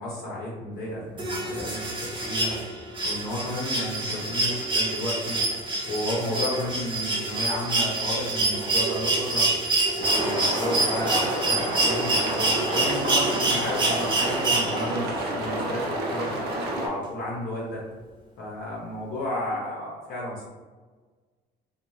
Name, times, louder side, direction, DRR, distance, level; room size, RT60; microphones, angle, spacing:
voice 1, 0.0-2.5 3.0-5.4 5.8-9.5 9.9-16.3 16.8-17.8 18.4-20.5, left 1 dB, 65° left, -5 dB, 0.7 m, -32 dB
sound 1, 1.2-15.1 16.5-16.6, right 2 dB, 30° right, 0.6 m, -26 dB
sound 2, 10.0-16.9, right 1 dB, 75° right, 0.6 m, -29 dB
2.5 x 2.3 x 3.0 m, 1.4 s
cardioid pair, 110°, 17 cm